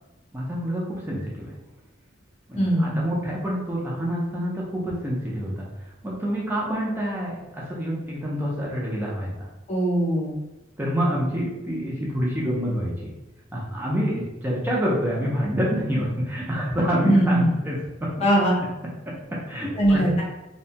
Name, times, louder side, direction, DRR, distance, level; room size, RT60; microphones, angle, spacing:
voice 1, 0.3-1.5 2.5-5.7 6.0-9.5 10.8-13.1 13.5-18.2 19.3-20.1, equal, 10° right, -5 dB, 0.4 m, -27 dB
voice 2, 2.6-3.0 9.7-10.3 17.0-17.4 18.2-18.5 19.8-20.2, right 1 dB, 35° left, -3 dB, 0.6 m, -20 dB
2.6 x 2.1 x 2.7 m, 1.0 s
head